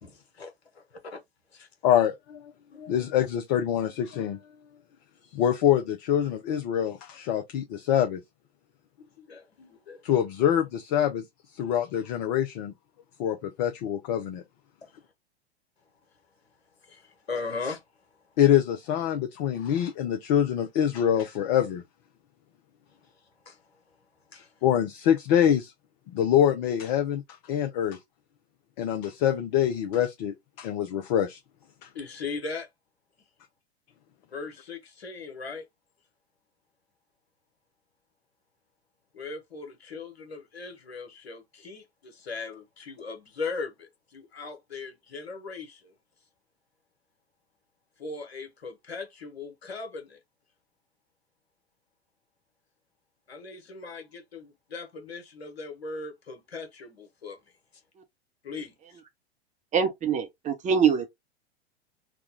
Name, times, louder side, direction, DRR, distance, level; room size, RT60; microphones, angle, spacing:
voice 1, 0.0-1.2 1.5-1.7 2.7-2.9 9.0-10.0 14.8-15.0 16.8-17.8 23.4-23.8 24.3-24.6 31.9-32.7 34.3-35.6 39.1-45.9 48.0-50.2 53.3-57.4 58.4-59.0, left 4 dB, 75° left, 1.5 m, -39 dB
voice 2, 1.8-2.4 2.8-4.4 5.3-8.2 10.0-11.2 11.5-12.7 13.2-14.4 18.4-21.8 24.6-25.7 26.1-27.2 27.5-28.0 28.8-31.4, left 10 dB, 45° left, 0.7 m, -25 dB
voice 3, 59.7-61.1, right 7 dB, 25° right, 0.9 m, -24 dB
3.6 x 2.3 x 3.6 m
figure-of-eight pair, 95°, 32 cm